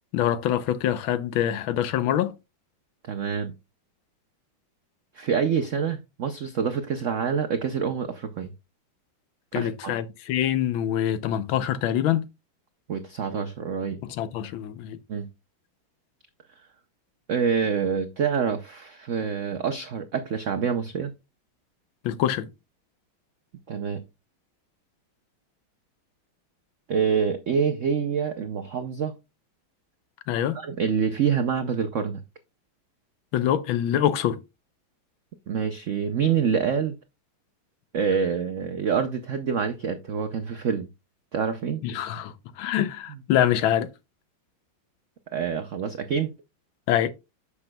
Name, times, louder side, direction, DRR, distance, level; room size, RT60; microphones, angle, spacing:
voice 1, 0.1-2.3 9.5-12.3 14.0-15.0 22.0-22.5 30.3-30.6 33.3-34.4 41.8-43.9 46.9-47.1, left 11 dB, 75° left, 1.5 m, -25 dB
voice 2, 3.0-3.5 5.1-8.5 9.5-9.9 12.9-14.0 15.1-15.3 17.3-21.1 23.7-24.0 26.9-29.2 30.5-32.2 35.5-36.9 37.9-40.9 41.3-41.8 45.3-46.3, right 6 dB, 75° right, 0.6 m, -26 dB
9.7 x 7.2 x 2.2 m
omnidirectional pair, 2.2 m